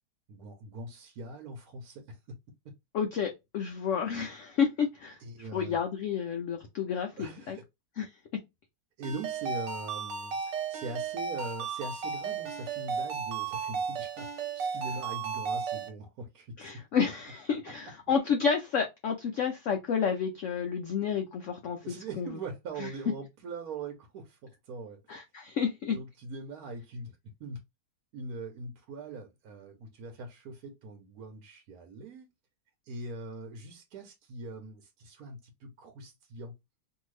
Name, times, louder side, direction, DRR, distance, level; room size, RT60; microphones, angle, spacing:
voice 1, 0.3-2.4 2.6-2.7 5.2-5.8 7.2-7.6 9.0-10.4 10.7-16.8 21.8-25.0 25.9-27.6 28.1-32.3 32.9-36.6, right 3 dB, 65° right, 1.1 m, -42 dB
voice 2, 2.9-5.2 5.5-7.6 8.0-8.1 16.6-22.3 22.8-22.9 25.1-26.0, left 6 dB, 80° left, 0.6 m, -30 dB
Ringtone, 9.0-15.9, right 6 dB, 90° right, 1.5 m, -34 dB
2.7 x 2.7 x 3.1 m
omnidirectional pair, 1.9 m